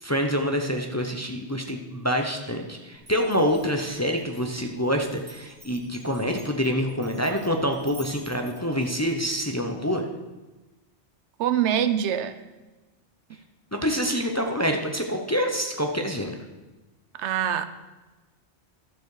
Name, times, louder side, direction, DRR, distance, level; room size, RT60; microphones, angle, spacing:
voice 1, 0.0-10.1 13.7-16.3, equal, 15° left, 3 dB, 0.6 m, -26 dB
Glass, 3.1-9.5, right 1 dB, 60° right, 4.3 m, -49 dB
voice 2, 11.4-12.4 17.1-17.7, right 9 dB, 80° right, 13 dB, 0.9 m, -24 dB
12.0 x 7.0 x 4.8 m, 1.1 s
omnidirectional pair, 1.2 m